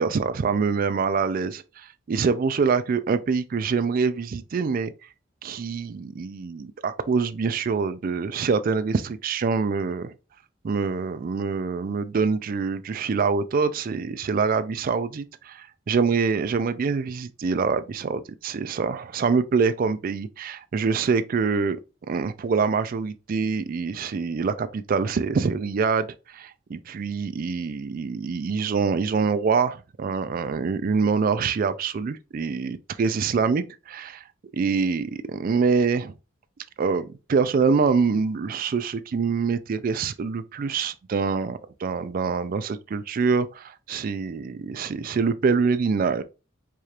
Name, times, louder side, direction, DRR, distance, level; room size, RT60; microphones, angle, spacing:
voice 1, 0.0-4.9 5.4-10.1 10.6-21.8 22.1-34.2 34.5-36.1 36.8-46.2, right 5 dB, 45° right, 0.3 m, -25 dB
4.7 x 2.4 x 2.8 m
head